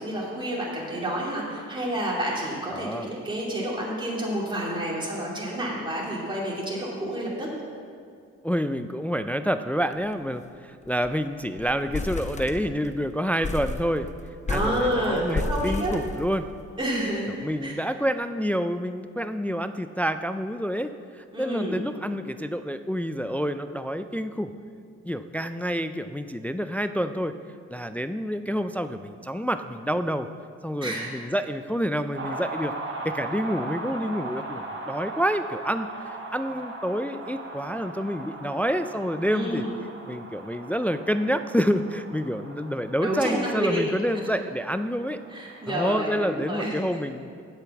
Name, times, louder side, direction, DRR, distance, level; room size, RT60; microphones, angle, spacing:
voice 1, 0.0-7.5 14.5-15.9 16.8-17.7 21.3-21.8 30.8-31.1 39.3-39.8 43.0-43.8 44.1-44.3 45.3-46.8, right 1 dB, 15° right, -5 dB, 2.6 m, -29 dB
voice 2, 2.7-3.1 8.4-14.1 14.5-16.5 17.4-24.5 25.0-27.4 27.7-30.3 30.6-32.7 33.0-39.6 40.1-45.2 45.7-47.4, equal, 5° left, 10 dB, 0.3 m, -28 dB
sound 1, 9.9-10.1 10.4-10.5 10.8-11.2 11.6-13.0 13.4-16.7, left 3 dB, 25° left, 0.8 m, -32 dB
sound 2, 32.1-46.6, right 2 dB, 40° right, 1.7 m, -39 dB
8.1 x 6.8 x 7.2 m, 2.2 s
supercardioid pair, 70°, 29 cm